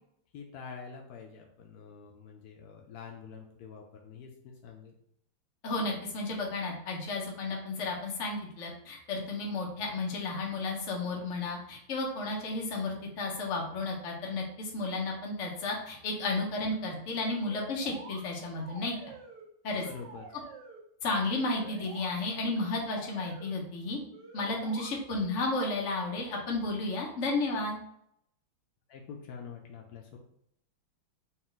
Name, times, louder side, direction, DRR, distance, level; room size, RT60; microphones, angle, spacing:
voice 1, 0.3-4.9 19.8-20.2 28.9-30.2, left 6 dB, 90° left, 1 dB, 0.8 m, -46 dB
voice 2, 5.6-18.9 19.6-19.8 21.0-24.0 24.3-27.8, left 2 dB, 55° left, -1 dB, 0.8 m, -33 dB
sound 1, 17.2-18.2 18.6-19.5 19.8-20.8 21.3-22.1 22.6-23.6 24.1-24.9, right 4 dB, 65° right, 1.2 m, -49 dB
4.3 x 2.4 x 3.8 m, 0.73 s
omnidirectional pair, 2.3 m